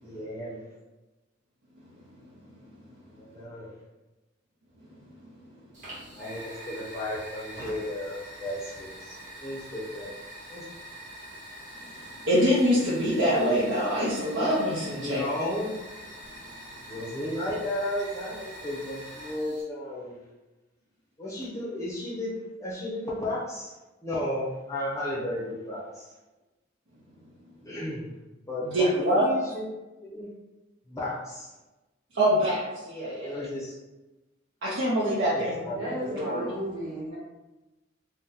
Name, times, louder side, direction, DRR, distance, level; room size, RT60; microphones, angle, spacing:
voice 1, 0.0-0.6 3.2-3.7 6.1-10.1 10.5-10.6 14.9-15.7 16.9-20.2 21.2-23.7 24.0-26.1 27.7-28.1 28.5-29.6 30.0-30.3 30.9-31.5 33.2-33.8 35.3-35.8, left 1 dB, 15° left, -6 dB, 0.6 m, -34 dB
Fire, 5.7-19.6, equal, 40° right, 1.1 m, -44 dB
voice 2, 12.0-15.2 28.6-29.3 32.1-33.5 34.6-36.5, equal, 65° right, -9 dB, 0.7 m, -25 dB
voice 3, 35.6-37.2, equal, 15° right, -10 dB, 0.9 m, -35 dB
2.7 x 2.2 x 3.7 m, 1.1 s
head